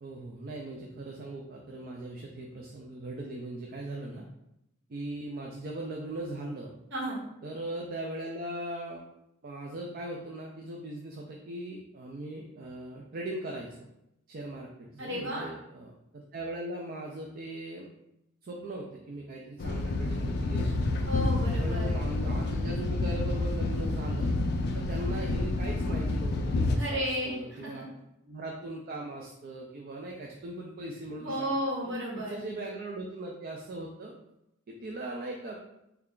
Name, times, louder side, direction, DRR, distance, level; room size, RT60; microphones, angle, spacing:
voice 1, 0.0-4.3 4.9-6.7 7.4-9.0 9.4-13.9 14.3-17.9 18.4-21.0 21.6-24.3 24.7-27.9 28.2-31.5 31.8-34.1 34.7-35.6, right 1 dB, 45° right, 0 dB, 0.4 m, -39 dB
voice 2, 6.9-7.2 15.0-15.5 21.0-22.0 26.7-27.8 31.2-32.4, equal, 60° right, -5 dB, 1.3 m, -33 dB
sound 1, 19.6-26.8, left 2 dB, 50° left, 0.3 m, -29 dB
3.2 x 2.3 x 3.6 m, 0.85 s
head